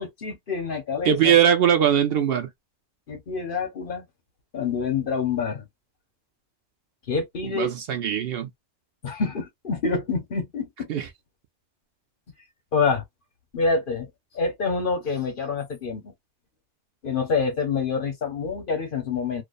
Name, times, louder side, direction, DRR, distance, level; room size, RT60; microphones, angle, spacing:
voice 1, 0.0-1.3 3.1-4.0 4.5-5.7 7.1-7.7 9.0-10.9 12.7-13.0 13.5-14.1 14.3-16.1 17.0-19.4, left 5 dB, 50° left, 0.9 m, -27 dB
voice 2, 1.0-2.5 7.4-8.5 10.9-11.1, right 9 dB, 65° right, 0.7 m, -21 dB
2.5 x 2.1 x 2.4 m
omnidirectional pair, 1.2 m